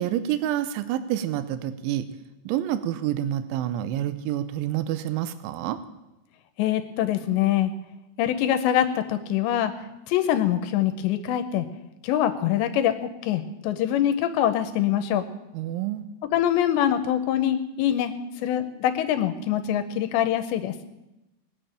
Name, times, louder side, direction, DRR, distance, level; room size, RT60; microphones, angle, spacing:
voice 1, 0.0-2.1 2.5-5.8 15.5-16.1, right 12 dB, 80° right, 11 dB, 3.0 m, -28 dB
voice 2, 6.6-7.7 8.2-11.7 12.0-15.3 16.3-18.2 18.4-20.8, left 11 dB, 80° left, 9 dB, 2.7 m, -24 dB
20.0 x 6.9 x 8.8 m, 0.96 s
omnidirectional pair, 5.6 m